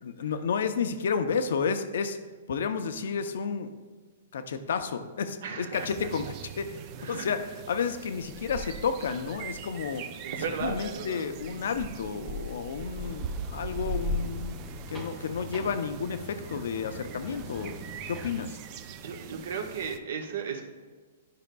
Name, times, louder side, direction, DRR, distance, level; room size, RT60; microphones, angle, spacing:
voice 1, 0.0-2.2 2.5-3.7 4.3-10.0 10.6-17.8 18.1-18.6, left 6 dB, 70° left, 9 dB, 0.6 m, -31 dB
sound 1, 5.7-20.0, right 2 dB, 30° right, 0.4 m, -39 dB
voice 2, 10.2-11.2 19.0-20.6, right 6 dB, 70° right, 3 dB, 1.2 m, -34 dB
sound 2, 13.0-18.5, equal, 5° right, 0.9 m, -44 dB
12.5 x 5.1 x 2.3 m, 1.4 s
hypercardioid pair, 160°, 0 cm